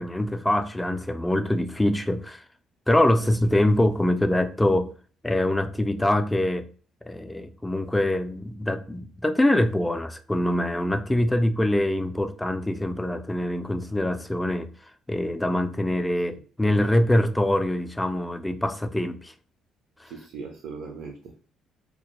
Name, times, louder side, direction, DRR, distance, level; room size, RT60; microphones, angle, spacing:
voice 1, 0.0-2.4 2.9-4.9 5.2-6.7 7.1-19.3 20.0-20.1, left 1 dB, 10° left, 0.3 m, -24 dB
voice 2, 20.0-21.5, right 5 dB, 75° right, 0.4 m, -39 dB
2.1 x 2.0 x 2.9 m
supercardioid pair, 75°, 0 cm